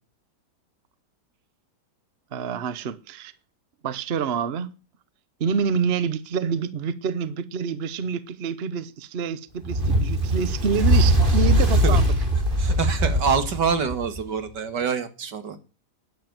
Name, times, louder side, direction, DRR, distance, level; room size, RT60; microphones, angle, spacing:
voice 1, 2.3-3.3 3.8-4.7 5.4-12.1, right 6 dB, 45° right, 0.9 m, -27 dB
Fire, 9.6-14.2, equal, 30° right, 3.5 m, -21 dB
voice 2, 12.6-15.6, right 6 dB, 85° right, 2.4 m, -26 dB
10.5 x 9.4 x 9.2 m
omnidirectional pair, 1.8 m